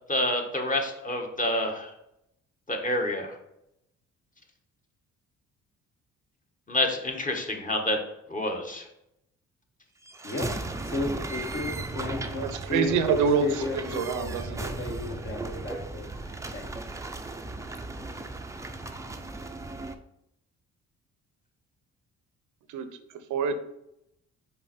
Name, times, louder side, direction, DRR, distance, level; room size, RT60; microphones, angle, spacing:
voice 1, 0.1-1.9 2.7-3.3 6.7-8.0 8.3-8.8, left 1 dB, 25° left, 2 dB, 1.2 m, -28 dB
sound 1, 10.0-20.0, right 2 dB, 10° right, 0.5 m, -36 dB
voice 2, 10.8-16.7, left 2 dB, 45° left, 2 dB, 1.3 m, -34 dB
voice 3, 12.4-14.7 22.7-22.9 23.3-23.5, right 6 dB, 80° right, 9 dB, 0.7 m, -26 dB
5.4 x 4.4 x 4.2 m, 0.83 s
cardioid pair, 90°, 30 cm